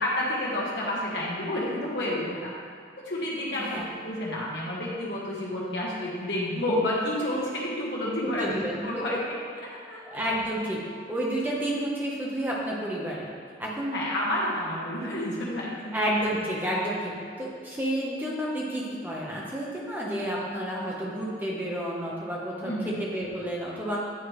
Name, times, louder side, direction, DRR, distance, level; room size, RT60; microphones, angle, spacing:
voice 1, 0.0-2.5 3.0-8.5 8.8-9.2 9.6-10.0 13.9-16.0 22.6-23.0, left 1 dB, 60° left, -5 dB, 1.3 m, -30 dB
voice 2, 3.5-3.9 8.2-9.2 10.1-10.8 11.1-13.3 13.6-14.0 15.9-17.1 17.4-24.0, right 1 dB, 10° right, -4 dB, 0.8 m, -30 dB
9.4 x 3.4 x 3.1 m, 2.1 s
head